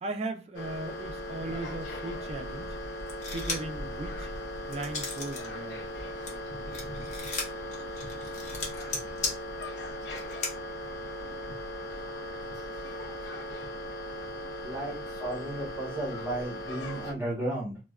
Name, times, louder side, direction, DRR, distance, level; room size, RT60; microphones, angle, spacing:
voice 1, 0.0-2.8 3.3-4.3 4.7-5.9, right 2 dB, 35° right, 0.4 m, -37 dB
sound 1, 0.5-17.1, equal, 85° left, 0.5 m, -38 dB
sound 2, 3.1-3.8 4.2-5.5 5.8-10.5, left 3 dB, 45° left, 0.8 m, -36 dB
voice 2, 14.6-17.8, right 1 dB, 10° right, 1.1 m, -34 dB
3.4 x 2.1 x 2.3 m
head